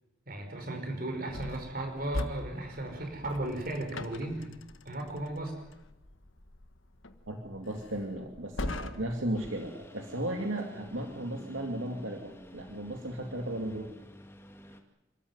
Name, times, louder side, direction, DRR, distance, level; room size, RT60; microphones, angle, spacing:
voice 1, 0.3-4.5 4.9-5.5, right 1 dB, 45° right, 5 dB, 5.4 m, -35 dB
sound 1, 1.3-9.3, left 1 dB, 75° left, 1.5 m, -42 dB
voice 2, 7.3-13.9, right 1 dB, 80° right, 3 dB, 2.4 m, -35 dB
Engine, 9.3-14.8, left 1 dB, 10° left, 1.9 m, -50 dB
27.5 x 14.0 x 9.5 m, 0.97 s
head